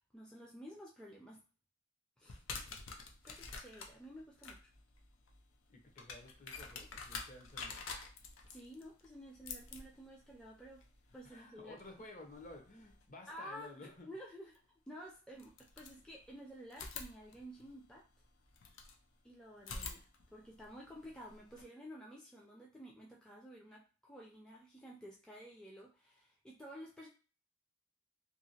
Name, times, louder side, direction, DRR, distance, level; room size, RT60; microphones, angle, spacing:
voice 1, 0.0-1.4 2.2-2.4 3.2-4.6 8.5-10.8 11.1-11.8 13.3-14.5 14.9-18.0 19.2-20.0 20.3-27.1, equal, 5° left, -3 dB, 0.4 m, -52 dB
sound 1, 2.3-13.1 14.5-14.6 15.3-16.3 16.7-19.0 19.6-21.6, left 4 dB, 85° left, 0.6 m, -49 dB
voice 2, 5.7-7.8 11.2-14.1, left 2 dB, 40° left, 2 dB, 0.8 m, -53 dB
2.8 x 2.8 x 2.8 m, 0.36 s
head